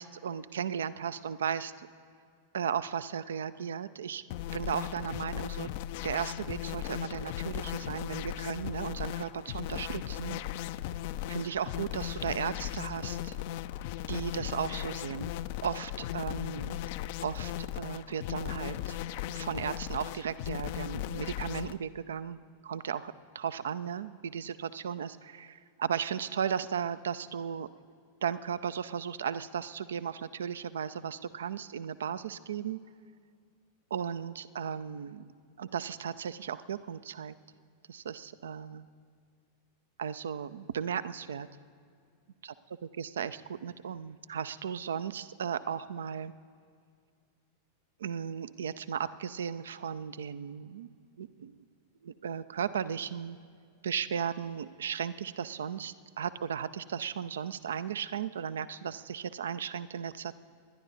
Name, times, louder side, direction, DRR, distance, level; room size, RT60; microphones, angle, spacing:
voice 1, 0.0-1.9 2.5-4.2 4.5-5.7 6.0-10.4 11.3-13.4 14.1-15.3 15.6-16.8 17.2-19.0 19.3-27.7 28.2-32.8 33.9-35.3 35.6-37.3 37.9-38.9 40.0-41.5 42.4-42.5 42.8-46.3 48.0-50.9 51.2-51.6 52.0-53.4 53.8-60.4, right 8 dB, 65° right, 15 dB, 0.5 m, -35 dB
sound 1, 4.3-21.8, left 13 dB, 50° left, 0.4 m, -37 dB
28.0 x 10.5 x 3.9 m, 2.2 s
figure-of-eight pair, 90°, 0 cm